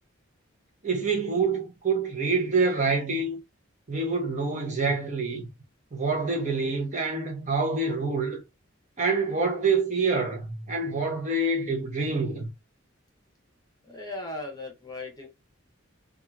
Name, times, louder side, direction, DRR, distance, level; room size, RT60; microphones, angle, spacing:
voice 1, 0.8-3.4 3.9-5.5 5.9-8.4 9.0-12.5, right 3 dB, 35° right, 0.7 m, -26 dB
voice 2, 13.9-15.3, left 2 dB, 20° left, 0.8 m, -37 dB
2.8 x 2.3 x 2.2 m
head